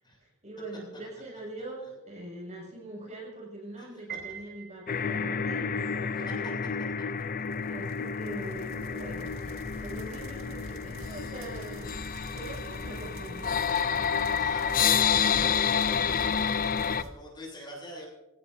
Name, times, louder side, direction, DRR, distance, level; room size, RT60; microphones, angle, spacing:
voice 1, 0.2-6.7 7.7-9.4 9.8-12.0 12.3-13.6, right 1 dB, 35° right, -2 dB, 6.9 m, -43 dB
Piano, 4.1-5.4, right 8 dB, 55° right, 4.3 m, -42 dB
sound 1, 4.9-17.0, left 7 dB, 45° left, 0.5 m, -29 dB
sound 2, 7.3-17.1, right 1 dB, 70° right, 2.2 m, -44 dB
voice 2, 14.3-18.1, left 1 dB, 20° left, -3 dB, 7.6 m, -45 dB
26.0 x 17.0 x 2.8 m, 0.97 s
head